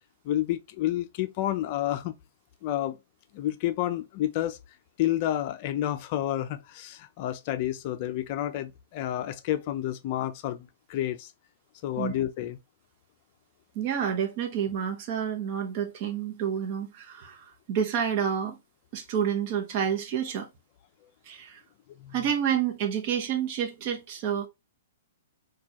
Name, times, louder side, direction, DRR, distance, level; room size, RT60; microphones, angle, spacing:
voice 1, 0.2-2.1 2.6-3.0 3.3-4.6 5.0-11.3 11.8-12.6 22.0-22.1, left 13 dB, 40° left, 0.4 m, -30 dB
voice 2, 13.7-18.6 18.9-20.5 21.2-21.6 22.1-24.5, right 8 dB, 40° right, 0.8 m, -29 dB
4.5 x 2.3 x 2.9 m
hypercardioid pair, 150°, 0 cm